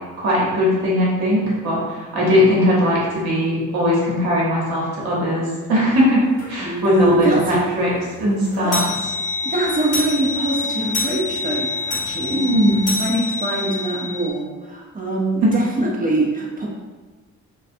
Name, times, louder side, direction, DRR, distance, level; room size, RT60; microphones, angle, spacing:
voice 1, 0.2-7.9 8.2-8.8 12.3-13.0 15.4-15.5, left 1 dB, 65° right, -5 dB, 1.0 m, -19 dB
sound 1, 6.4-6.5 7.0-7.1 7.4-7.5 7.9-14.3, left 3 dB, 60° left, 0.7 m, -26 dB
voice 2, 6.6-7.6 8.6-8.8 9.4-12.4 13.0-16.7, right 2 dB, 20° right, -3 dB, 0.5 m, -23 dB
2.4 x 2.2 x 2.5 m, 1.3 s
hypercardioid pair, 45°, 39 cm